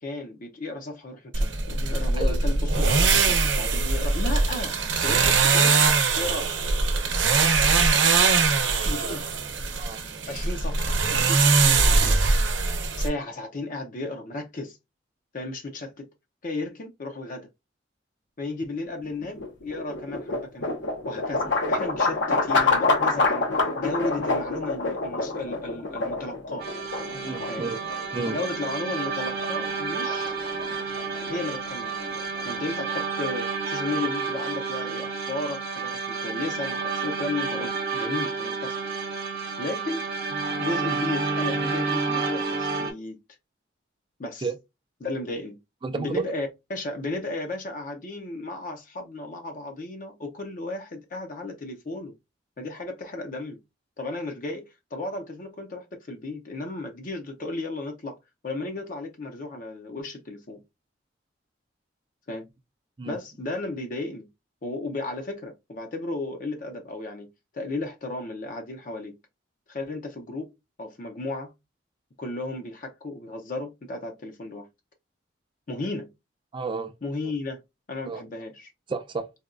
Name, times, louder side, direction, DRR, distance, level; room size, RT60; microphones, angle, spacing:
voice 1, 0.0-4.7 5.0-5.8 6.2-6.5 8.8-9.3 10.3-12.2 13.0-14.8 15.3-16.1 16.4-17.5 18.4-20.7 21.1-23.5 23.8-26.7 27.5-27.7 28.3-30.3 31.3-32.1 32.4-38.8 39.6-40.1 40.6-43.2 44.2-44.5 45.0-45.6 46.0-52.1 52.6-53.6 54.0-58.2 58.4-60.6 62.3-62.5 63.1-64.3 64.6-67.3 67.5-69.1 69.7-70.5 70.8-71.5 72.2-74.7 75.7-76.1 77.0-77.6 77.9-78.7, left 2 dB, 45° left, 0.5 m, -34 dB
sound 1, 1.3-13.1, right 4 dB, 85° right, 0.7 m, -22 dB
sound 2, 19.0-33.1, left 3 dB, 80° left, 0.8 m, -28 dB
sound 3, 26.6-42.9, right 4 dB, 55° right, 0.9 m, -30 dB
voice 2, 27.1-27.8 28.1-28.4 44.4-44.5 45.8-46.2 63.0-63.2 76.5-76.9 77.2-77.3 78.0-78.2 78.9-79.3, right 4 dB, 25° right, 0.4 m, -31 dB
4.1 x 2.2 x 2.4 m
head